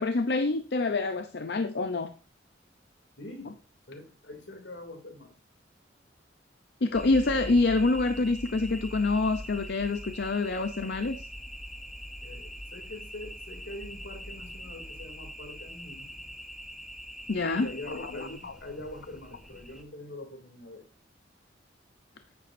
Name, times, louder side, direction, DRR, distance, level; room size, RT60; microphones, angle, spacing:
voice 1, 0.0-2.1 6.8-11.2 17.3-18.1 18.4-18.5, left 3 dB, 60° left, 9 dB, 0.6 m, -26 dB
voice 2, 3.2-3.5 3.9-5.4 12.2-16.1 17.6-20.9, left 1 dB, 85° left, 5 dB, 2.5 m, -44 dB
sound 1, 6.9-19.8, equal, ahead, 0.9 m, -42 dB
9.6 x 9.2 x 2.6 m, 0.34 s
head